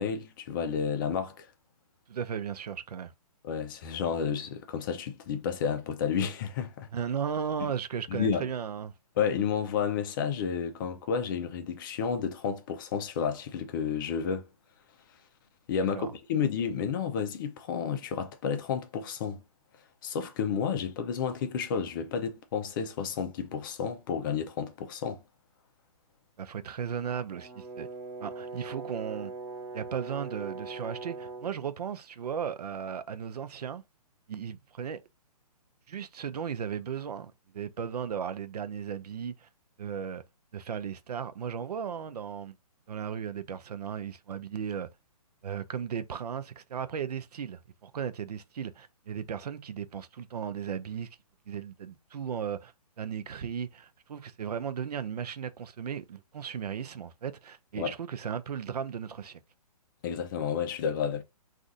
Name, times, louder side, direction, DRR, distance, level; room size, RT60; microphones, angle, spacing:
voice 1, 0.0-1.5 3.4-6.9 8.1-8.5 9.2-14.5 15.7-19.4 20.0-25.2 57.8-57.9 60.0-61.2, left 7 dB, 35° left, 0.5 m, -31 dB
voice 2, 2.1-3.1 6.9-8.9 15.9-16.1 26.4-27.9 28.2-29.3 29.7-33.8 34.3-35.0 35.9-39.5 39.8-40.2 40.5-42.6 42.9-44.9 45.4-51.1 51.5-59.4, right 7 dB, 85° right, 0.5 m, -36 dB
Brass instrument, 27.3-31.5, right 3 dB, 20° right, 0.8 m, -41 dB
2.5 x 2.5 x 3.9 m
hypercardioid pair, 150°, 20 cm